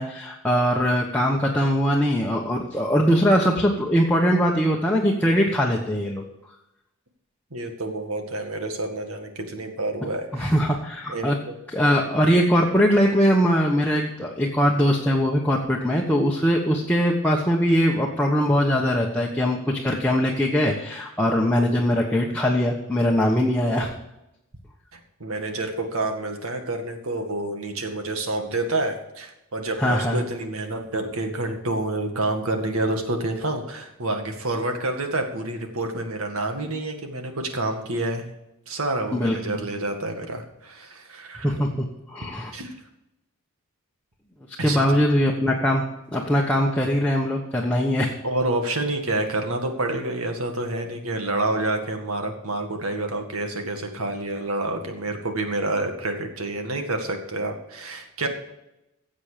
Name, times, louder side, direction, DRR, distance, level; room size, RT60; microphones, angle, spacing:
voice 1, 0.0-6.2 10.3-11.4 11.7-23.9 29.8-30.2 39.1-39.6 41.4-42.5 44.6-45.8 46.1-48.1, equal, 5° left, -2 dB, 1.1 m, -21 dB
voice 2, 7.5-10.6 11.1-11.5 24.9-38.3 38.7-41.5 42.5-42.8 44.6-44.8 48.2-58.3, right 2 dB, 85° right, 5 dB, 2.0 m, -28 dB
15.5 x 7.5 x 5.1 m, 0.89 s
head